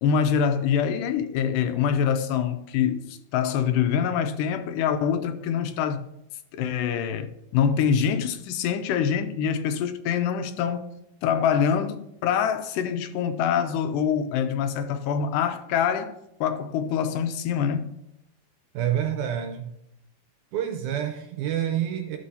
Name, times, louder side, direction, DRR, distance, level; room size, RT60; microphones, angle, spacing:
voice 1, 0.0-6.1 6.5-10.9 11.2-16.1 16.4-18.0, left 7 dB, 85° left, 2.2 m, -25 dB
voice 2, 18.7-19.7 20.5-22.2, right 10 dB, 80° right, 1.9 m, -28 dB
13.0 x 6.2 x 2.7 m
omnidirectional pair, 3.9 m